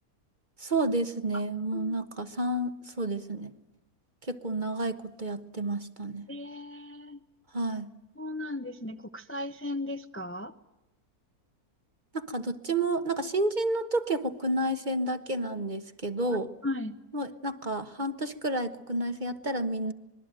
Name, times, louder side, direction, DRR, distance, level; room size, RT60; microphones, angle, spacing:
voice 1, 0.6-3.5 4.2-6.3 7.5-7.9 12.1-16.5 17.1-19.9, right 2 dB, 35° right, 9 dB, 1.4 m, -30 dB
voice 2, 6.3-7.2 8.2-10.5 16.6-17.0, left 2 dB, 10° left, 8 dB, 0.8 m, -36 dB
26.0 x 21.5 x 9.1 m, 0.94 s
omnidirectional pair, 1.6 m